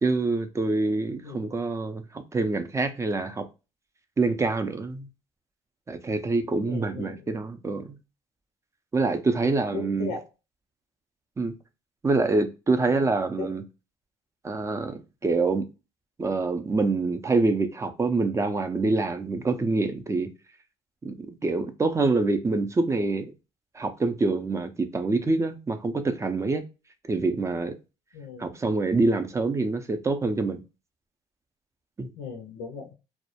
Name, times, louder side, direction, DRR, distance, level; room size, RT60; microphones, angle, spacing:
voice 1, 0.0-3.4 4.2-5.1 5.9-7.9 8.9-10.1 11.4-11.5 12.0-13.6 14.4-15.7 16.2-20.3 21.0-23.3 23.8-26.6 27.0-27.7 28.4-30.6 32.0-32.1, right 3 dB, 20° right, 0.4 m, -26 dB
voice 2, 6.6-7.4 9.4-10.3 12.9-13.0 13.4-13.5 28.1-28.5 32.2-32.9, left 4 dB, 85° left, 0.5 m, -37 dB
2.2 x 2.0 x 2.8 m
supercardioid pair, 85°, 14 cm